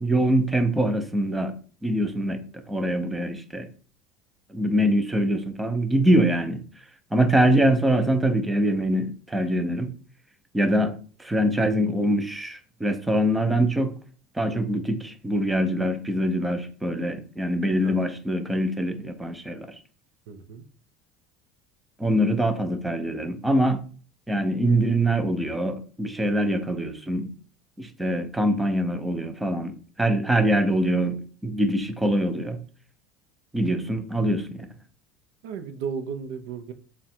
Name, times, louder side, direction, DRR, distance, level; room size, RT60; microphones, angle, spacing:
voice 1, 0.0-1.5 1.8-2.4 2.7-3.7 4.5-6.6 7.1-9.9 10.5-10.9 11.2-13.9 14.4-19.7 22.0-23.8 24.3-27.3 27.8-29.7 30.0-32.6 33.5-34.7, right 1 dB, 5° right, 7 dB, 0.5 m, -24 dB
voice 2, 20.3-20.6 35.4-36.7, right 6 dB, 80° right, 9 dB, 0.5 m, -34 dB
3.7 x 2.2 x 4.2 m, 0.41 s
cardioid pair, 140°, 0 cm